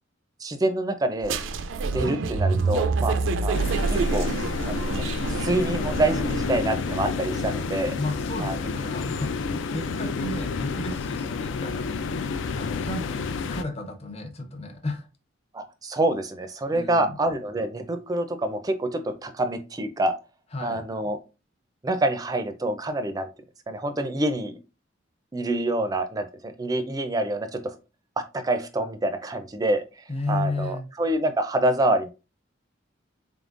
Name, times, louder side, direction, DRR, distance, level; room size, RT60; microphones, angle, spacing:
voice 1, 0.4-1.4 1.8-3.1 3.4-3.6 3.9-4.3 4.7-8.0 8.4-8.6 15.5-20.1 20.6-21.2 21.8-23.3 23.7-24.6 25.3-27.8 28.3-32.1, right 1 dB, 20° right, 0.4 m, -26 dB
sound 1, 1.2-6.8, right 4 dB, 85° right, 0.4 m, -27 dB
sound 2, 3.5-13.6, left 4 dB, 80° left, 0.4 m, -30 dB
voice 2, 8.0-15.1 16.7-17.1 20.5-20.8 30.1-30.9, left 2 dB, 35° left, 0.6 m, -33 dB
3.8 x 3.6 x 2.5 m
head